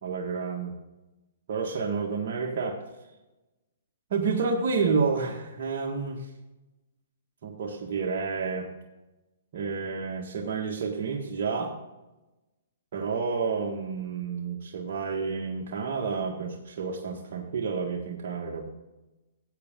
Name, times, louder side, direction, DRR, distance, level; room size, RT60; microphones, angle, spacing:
voice 1, 0.0-0.8 1.5-2.8 4.1-6.3 7.4-8.7 9.5-11.7 12.9-18.6, right 5 dB, 55° right, -1 dB, 1.7 m, -30 dB
15.0 x 8.6 x 3.7 m, 1.0 s
hypercardioid pair, 140°, 0 cm